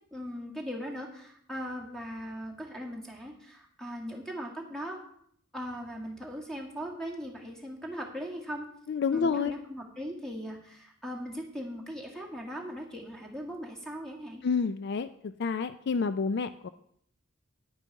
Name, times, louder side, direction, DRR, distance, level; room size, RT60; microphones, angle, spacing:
voice 1, 0.1-5.0 5.5-8.7 9.1-14.4, equal, 5° left, 0 dB, 1.9 m, -39 dB
voice 2, 8.9-9.5 14.4-16.7, left 5 dB, 55° left, 12 dB, 0.4 m, -29 dB
9.7 x 9.0 x 4.7 m, 0.67 s
head